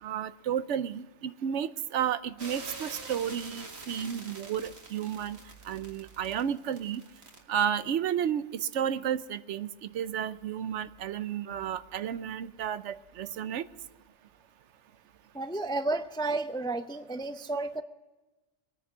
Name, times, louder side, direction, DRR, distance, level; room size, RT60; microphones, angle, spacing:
voice 1, 0.0-5.4 5.6-7.0 7.5-13.7, right 9 dB, 80° right, 14 dB, 1.0 m, -32 dB
sound 1, 2.4-7.4, right 3 dB, 65° right, 2.1 m, -45 dB
voice 2, 15.3-17.8, right 2 dB, 5° left, 9 dB, 0.4 m, -32 dB
23.0 x 9.7 x 6.1 m, 1.1 s
omnidirectional pair, 1.2 m